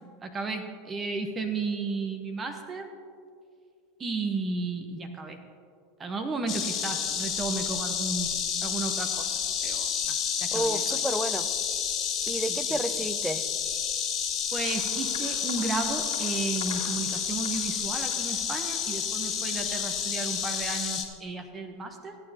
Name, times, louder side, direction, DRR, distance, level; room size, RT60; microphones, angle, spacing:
voice 1, 0.2-2.9 4.0-5.4 6.0-8.3 8.6-9.3 9.6-11.0 12.4-12.8 14.5-22.2, right 3 dB, 25° right, 6 dB, 1.0 m, -33 dB
Insect, 6.5-21.0, left 8 dB, 40° left, 1.3 m, -30 dB
voice 2, 10.5-11.5 12.3-13.4, right 1 dB, 5° right, 11 dB, 0.6 m, -30 dB
sound 1, 14.5-19.5, left 4 dB, 80° left, 1.9 m, -48 dB
16.5 x 9.3 x 2.9 m, 2.3 s
hypercardioid pair, 85°, 0 cm